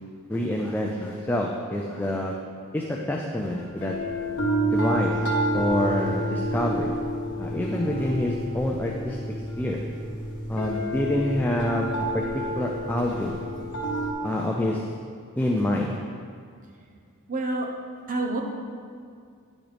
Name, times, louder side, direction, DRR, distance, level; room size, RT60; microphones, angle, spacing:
voice 1, 0.3-2.3 2.7-4.0 4.6-5.2 5.5-6.9 7.4-9.2 9.6-9.8 10.5-11.9 12.1-13.4 14.2-14.8 15.4-15.9, left 1 dB, 10° left, -1 dB, 0.4 m, -27 dB
sound 1, 3.7-14.1, equal, 55° left, 1.4 m, -29 dB
voice 2, 17.3-17.7 18.1-18.4, right 2 dB, 35° right, 1 dB, 0.8 m, -27 dB
9.7 x 6.2 x 3.4 m, 2.2 s
head